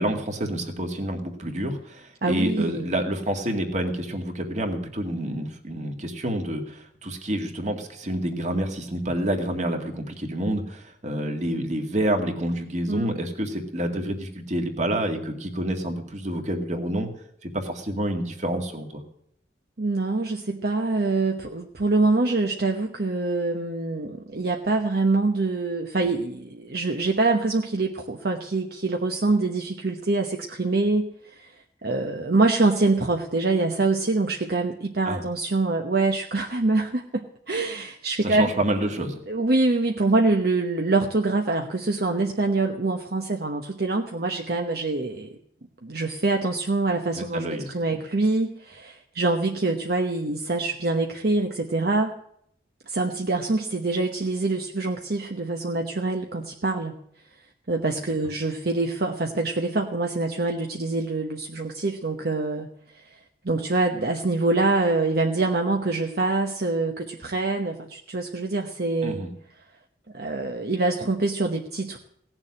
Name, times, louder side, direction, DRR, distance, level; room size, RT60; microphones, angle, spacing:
voice 1, 0.0-17.1 17.4-19.0 35.0-35.2 38.2-39.2 47.1-47.7 69.0-69.3, right 1 dB, 40° right, 4 dB, 2.2 m, -28 dB
voice 2, 2.2-2.9 12.9-13.2 19.8-31.1 31.4-31.5 31.8-38.5 39.3-45.3 45.8-52.1 52.9-57.0 57.7-62.7 63.4-69.2 70.1-72.0, right 3 dB, 60° right, 3 dB, 1.1 m, -25 dB
17.5 x 7.3 x 9.8 m, 0.71 s
head